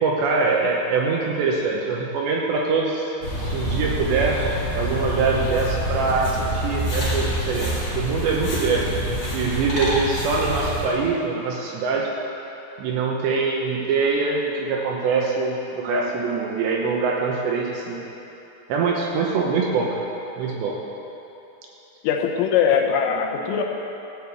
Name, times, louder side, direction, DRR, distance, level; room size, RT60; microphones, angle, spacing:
voice 1, 0.0-3.1 3.4-4.4 4.8-12.1 12.8-18.0 18.7-19.9 20.4-20.8, right 4 dB, 75° right, -2 dB, 2.9 m, -23 dB
sound 1, 3.2-10.9, equal, 20° left, 2.2 m, -26 dB
voice 2, 22.0-23.6, left 7 dB, 80° left, 2 dB, 3.5 m, -21 dB
14.5 x 6.7 x 8.2 m, 3.0 s
omnidirectional pair, 5.9 m